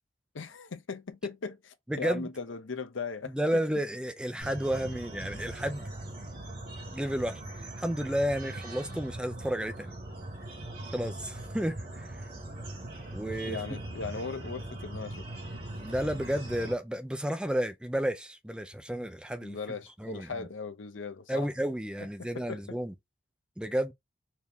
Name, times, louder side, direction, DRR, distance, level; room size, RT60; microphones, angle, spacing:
voice 1, 0.3-3.3 13.4-15.2 19.4-21.5 22.2-22.8, left 4 dB, 75° left, 0.7 m, -38 dB
voice 2, 1.9-2.3 3.2-5.9 6.9-9.9 10.9-12.3 13.1-13.6 15.8-19.6 20.0-20.5 21.3-22.9 23.6-23.9, equal, 5° right, 0.4 m, -32 dB
sound 1, 4.4-16.7, right 1 dB, 50° right, 1.9 m, -40 dB
4.5 x 2.7 x 3.5 m
head